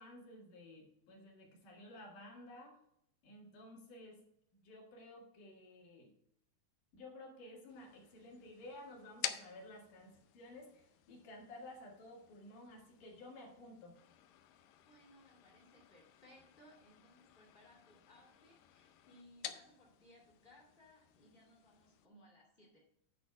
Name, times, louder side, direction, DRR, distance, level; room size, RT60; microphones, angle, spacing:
voice 1, 0.0-2.8 3.2-4.2 4.5-6.1 6.9-13.9, left 1 dB, 55° left, -2 dB, 3.1 m, -54 dB
sound 1, 7.7-22.1, left 11 dB, 90° left, 2.0 m, -51 dB
voice 2, 14.8-22.8, left 1 dB, 25° left, -4 dB, 1.1 m, -64 dB
10.5 x 4.1 x 5.8 m, 0.74 s
omnidirectional pair, 4.7 m